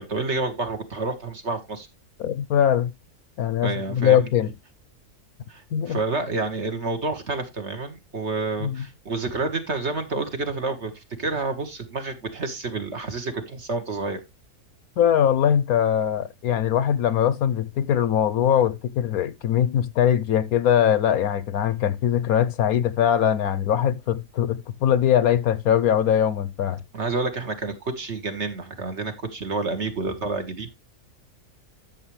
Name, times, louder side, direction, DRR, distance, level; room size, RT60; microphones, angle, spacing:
voice 1, 0.0-1.9 3.6-4.3 5.5-14.2 26.9-30.7, right 3 dB, 45° right, 1.7 m, -29 dB
voice 2, 2.2-2.9 3.4-4.5 5.7-6.0 8.6-8.9 15.0-26.8, left 9 dB, 70° left, 1.1 m, -21 dB
12.5 x 6.8 x 3.2 m
omnidirectional pair, 1.7 m